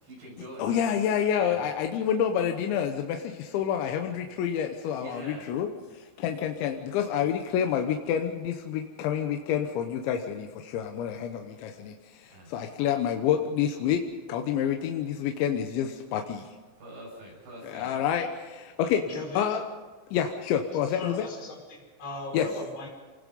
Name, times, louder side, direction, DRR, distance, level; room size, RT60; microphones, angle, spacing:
voice 1, 0.0-0.8 1.4-1.6 5.0-5.5 12.3-12.5 16.8-17.9, right 1 dB, 85° right, -4 dB, 9.5 m, -44 dB
voice 2, 0.6-14.0 14.3-16.5 17.6-19.0 19.4-19.6 20.1-21.3 22.3-22.5, left 9 dB, 85° left, 4 dB, 3.4 m, -28 dB
voice 3, 19.1-19.5 20.8-22.9, left 2 dB, 55° left, -3 dB, 6.7 m, -38 dB
28.0 x 19.5 x 5.4 m, 1.3 s
omnidirectional pair, 5.1 m